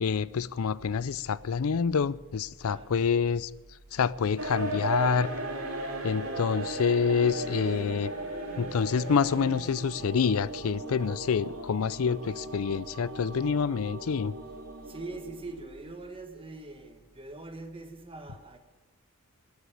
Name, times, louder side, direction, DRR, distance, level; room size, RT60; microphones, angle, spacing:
voice 1, 0.0-3.5 3.9-5.3 6.0-8.1 8.6-14.3, left 6 dB, 70° left, 0.4 m, -27 dB
sound 1, 0.7-16.5, right 1 dB, 55° right, 1.2 m, -56 dB
voice 2, 2.6-3.0 14.9-18.6, right 2 dB, 25° right, 1.5 m, -43 dB
sound 2, 4.4-15.6, right 2 dB, 80° right, 2.6 m, -37 dB
13.0 x 8.2 x 8.6 m
head